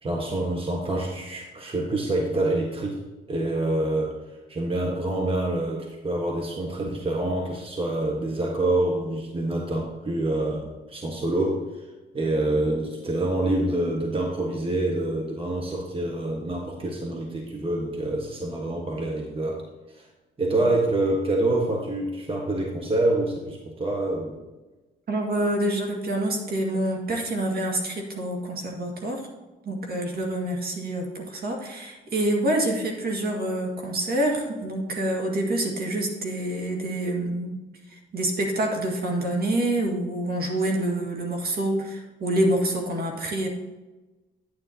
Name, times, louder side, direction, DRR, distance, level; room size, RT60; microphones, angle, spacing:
voice 1, 0.0-3.0 3.3-4.1 4.5-11.8 12.1-19.6 19.9-20.1 20.4-24.4, right 2 dB, 25° right, 0 dB, 1.4 m, -26 dB
voice 2, 25.1-29.3 29.7-37.6 37.9-43.5, right 1 dB, 50° right, 1 dB, 2.0 m, -27 dB
9.4 x 9.3 x 2.9 m, 1.2 s
cardioid pair, 90°, 20 cm